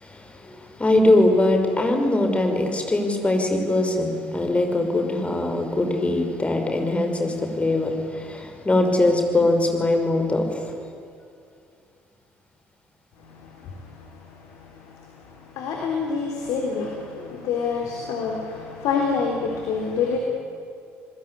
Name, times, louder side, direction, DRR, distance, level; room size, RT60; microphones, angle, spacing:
voice 1, 0.0-10.6, left 2 dB, 20° left, 4 dB, 5.6 m, -22 dB
voice 2, 13.2-20.2, left 5 dB, 60° left, 1 dB, 3.8 m, -28 dB
28.5 x 21.0 x 10.0 m, 2.4 s
figure-of-eight pair, 55°, 7 cm